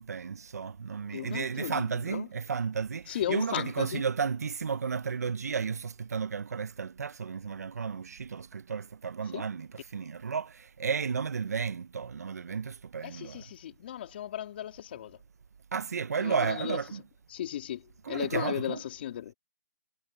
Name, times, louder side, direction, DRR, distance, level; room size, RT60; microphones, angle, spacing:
voice 1, 0.0-13.5 15.7-17.0 18.0-18.8, right 6 dB, 75° right, 0.8 m, -33 dB
voice 2, 1.1-2.3 3.1-4.0 9.3-9.5 13.0-15.2 16.2-16.8 17.3-19.3, left 11 dB, 40° left, 3.3 m, -36 dB
hypercardioid pair, 160°, 9 cm